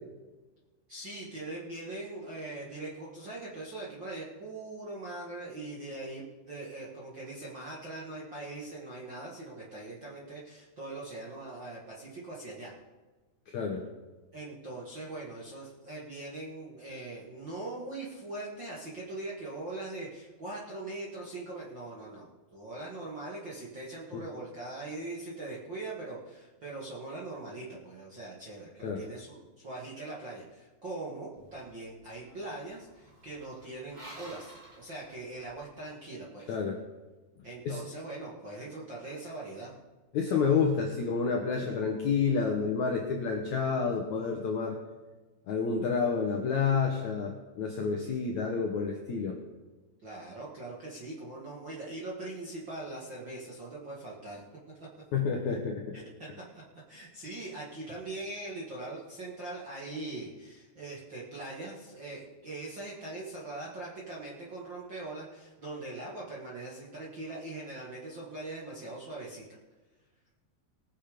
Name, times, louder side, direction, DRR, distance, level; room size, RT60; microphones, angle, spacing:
voice 1, 0.9-12.7 14.3-36.6 37.4-39.7 50.0-54.4 55.9-56.0 56.5-56.6 56.9-69.6, right 2 dB, 45° right, -5 dB, 1.6 m, -41 dB
voice 2, 13.5-13.8 24.1-24.2 28.8-29.0 36.5-36.8 37.7-37.8 40.1-44.8 45.5-49.4 55.1-56.0, left 5 dB, 70° left, 1 dB, 1.8 m, -29 dB
sound 1, 31.4-35.7, right 1 dB, 20° right, 1.4 m, -53 dB
20.0 x 7.3 x 5.1 m, 1.3 s
omnidirectional pair, 4.8 m